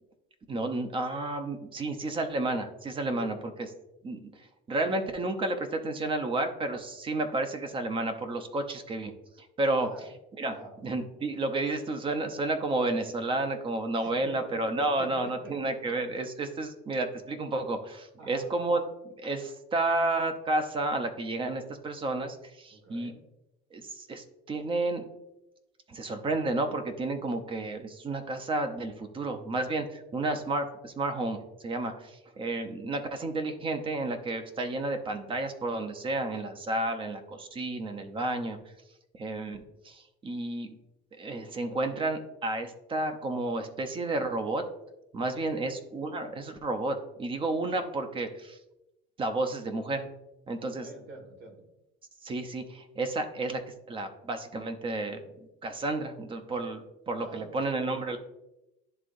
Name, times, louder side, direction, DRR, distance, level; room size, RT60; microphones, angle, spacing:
voice 1, 0.5-3.7 4.0-9.1 9.6-10.1 10.4-10.6 10.8-18.8 19.2-23.1 23.7-25.0 25.9-38.6 39.1-40.8 41.2-44.6 45.1-48.6 49.2-50.1 50.5-50.9 52.2-53.6 53.9-55.2 55.6-58.2, right 2 dB, 25° right, 7 dB, 0.7 m, -31 dB
voice 2, 9.6-10.1 10.5-10.7 14.0-14.4 15.0-15.5 18.2-18.5 22.7-23.2 45.2-45.7 50.6-51.6 57.2-57.5, right 2 dB, 75° right, 2 dB, 1.9 m, -46 dB
11.0 x 3.7 x 2.6 m, 0.91 s
cardioid pair, 140°, 20 cm